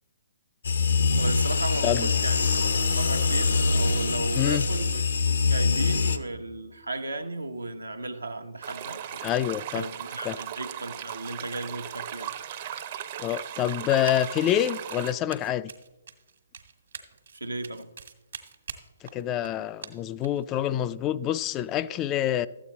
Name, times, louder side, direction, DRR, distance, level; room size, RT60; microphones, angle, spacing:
sound 1, 0.6-6.2, left 4 dB, 70° left, 0.7 m, -24 dB
voice 1, 1.2-9.2 9.7-12.3 17.3-17.9, right 2 dB, 85° right, 0.9 m, -35 dB
voice 2, 4.3-4.7 9.2-9.9 10.2-10.4 13.2-15.7 19.1-22.5, left 11 dB, 25° left, 0.3 m, -27 dB
sound 2, 8.6-15.1, right 10 dB, 45° right, 0.7 m, -37 dB
Run, 14.1-14.2 14.5-20.4, right 6 dB, 65° right, 1.4 m, -43 dB
13.0 x 8.4 x 4.1 m
figure-of-eight pair, 130°, 0 cm